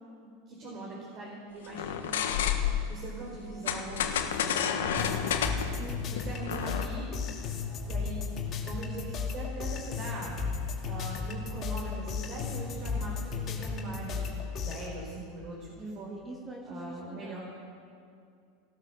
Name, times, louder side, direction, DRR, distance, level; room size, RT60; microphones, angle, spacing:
voice 1, 0.5-2.2 2.9-5.5 6.1-7.1 7.9-8.2 8.5-10.3 10.8-14.3 14.6-16.1 16.6-17.4, right 2 dB, 45° right, -4 dB, 4.7 m, -41 dB
sound 1, 1.7-2.9 3.7-6.9, left 8 dB, 80° left, 1.3 m, -30 dB
sound 2, 5.0-14.9, left 5 dB, 40° left, 2.5 m, -35 dB
voice 2, 5.8-6.4 15.8-17.4, right 1 dB, 15° right, 0 dB, 1.8 m, -44 dB
16.5 x 12.5 x 6.9 m, 2.4 s
hypercardioid pair, 100°, 0 cm